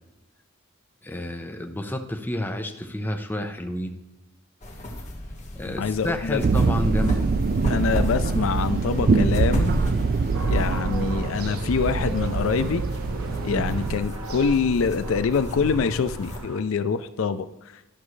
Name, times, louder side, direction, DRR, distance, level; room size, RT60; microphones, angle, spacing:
voice 1, 1.0-4.0 5.5-7.3 13.5-13.8, left 1 dB, 10° left, 4 dB, 0.6 m, -30 dB
sound 1, 4.6-16.4, left 1 dB, 30° left, 1.3 m, -35 dB
voice 2, 5.7-6.4 7.7-9.8 10.5-12.8 13.4-17.5, left 5 dB, 65° left, 13 dB, 0.4 m, -25 dB
sound 2, 6.4-14.0, right 4 dB, 40° right, 0.4 m, -24 dB
sound 3, 10.3-16.6, right 4 dB, 80° right, 1.1 m, -38 dB
12.0 x 6.1 x 3.2 m, 1.0 s
head